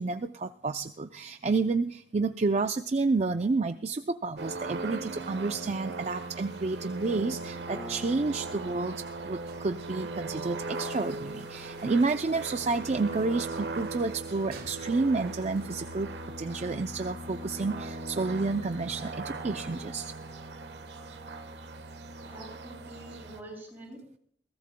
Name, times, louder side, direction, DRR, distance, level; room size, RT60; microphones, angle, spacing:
voice 1, 0.0-16.1 16.4-20.1, right 3 dB, 40° right, 8 dB, 0.5 m, -30 dB
sound 1, 4.4-23.4, right 2 dB, 75° right, 1.3 m, -39 dB
Piano, 7.7-14.8, left 1 dB, 10° left, 3.0 m, -50 dB
sound 2, 8.3-16.2, right 3 dB, 60° right, 1.9 m, -56 dB
voice 2, 22.2-24.2, right 1 dB, 10° right, -2 dB, 7.3 m, -46 dB
22.0 x 17.0 x 2.2 m, 0.63 s
head